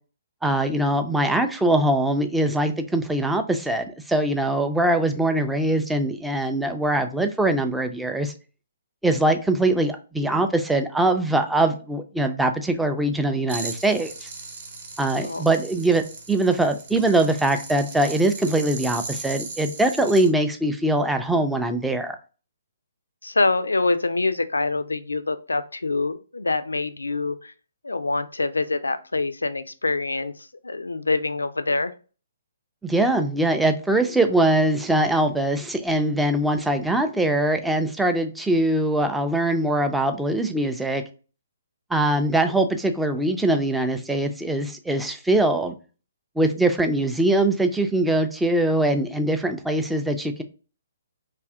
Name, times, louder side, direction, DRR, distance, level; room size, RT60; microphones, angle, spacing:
voice 1, 0.4-8.3 9.0-14.3 15.0-22.2 32.8-41.0 41.9-45.7 46.4-50.4, right 1 dB, 5° right, 0.3 m, -22 dB
sound 1, 13.5-20.3, right 3 dB, 50° right, 0.9 m, -38 dB
voice 2, 23.2-27.5 27.8-31.9, left 3 dB, 85° left, 0.3 m, -25 dB
2.7 x 2.4 x 3.5 m
figure-of-eight pair, 130°, 0 cm